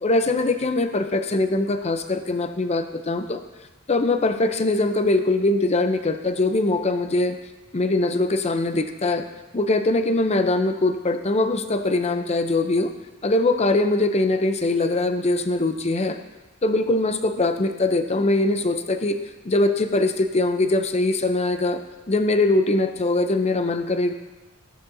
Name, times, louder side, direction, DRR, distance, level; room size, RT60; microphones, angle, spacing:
voice 1, 0.0-3.4 3.9-7.4 7.7-9.2 9.5-12.9 13.2-16.2 16.6-19.2 19.4-21.8 22.1-24.1, left 2 dB, 30° left, 8 dB, 0.6 m, -22 dB
14.5 x 11.0 x 2.7 m, 1.1 s
head